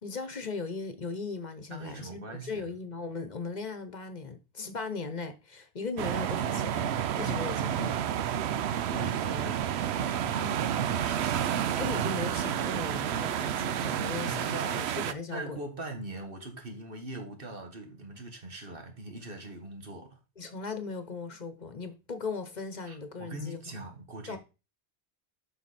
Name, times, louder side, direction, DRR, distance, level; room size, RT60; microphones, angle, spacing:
voice 1, 0.0-8.0 11.7-15.6 20.4-23.7 24.3-24.4, left 4 dB, 45° left, 1.1 m, -38 dB
voice 2, 1.7-2.7 8.9-11.7 14.2-14.8 15.3-20.2 22.9-24.4, right 2 dB, 60° right, 1.9 m, -41 dB
sound 1, 6.0-15.1, right 9 dB, 80° right, 0.9 m, -30 dB
7.7 x 5.8 x 4.2 m
omnidirectional pair, 1.1 m